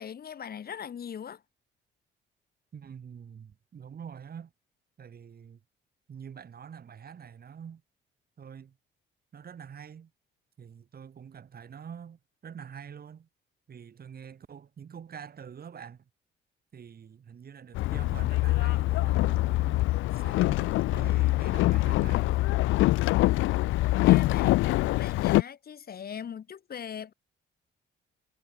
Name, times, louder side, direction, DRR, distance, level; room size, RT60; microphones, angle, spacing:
voice 1, 0.0-1.4 23.8-27.1, left 8 dB, 50° left, 1.8 m, -41 dB
voice 2, 2.7-4.5 5.0-5.6 6.1-7.8 8.4-8.8 9.3-10.1 10.6-13.3 13.7-16.0 16.7-22.3, right 7 dB, 50° right, 4.0 m, -46 dB
Boat Water vehicle, 17.7-25.4, left 18 dB, 85° left, 0.5 m, -24 dB
cardioid pair, 90°, 20 cm